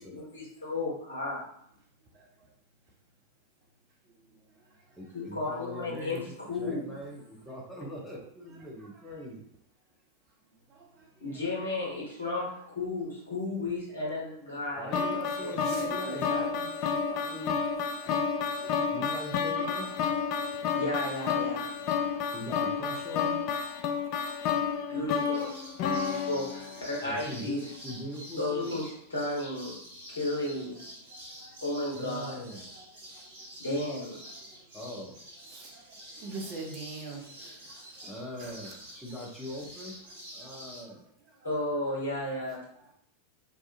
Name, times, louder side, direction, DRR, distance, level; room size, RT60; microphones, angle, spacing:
voice 1, 0.0-1.4 5.1-6.9 11.2-15.0 15.4-16.4 16.9-17.0 20.7-21.7 24.9-25.5 25.9-27.7 28.4-29.8 30.1-30.8 31.6-32.4 33.6-34.2 41.4-42.6, left 2 dB, 70° left, -5 dB, 1.2 m, -34 dB
voice 2, 5.0-9.4 14.8-16.7 17.2-17.6 18.9-19.9 22.3-23.4 27.0-28.8 31.9-32.7 34.7-35.2 38.0-40.0 40.3-41.0, equal, 5° left, -4 dB, 0.7 m, -41 dB
sound 1, 14.9-27.1, left 6 dB, 40° left, 0.3 m, -31 dB
voice 3, 17.9-18.9 26.5-27.1 28.4-28.5 30.7-30.9 31.4-31.5 32.7-32.8 34.3-34.4 35.4-35.8 36.1-37.8 38.4-38.7, right 3 dB, 40° right, 1 dB, 0.5 m, -45 dB
sound 2, 25.3-40.8, equal, 60° right, 1.1 m, -48 dB
2.7 x 2.3 x 2.4 m, 0.71 s
figure-of-eight pair, 90°, 0 cm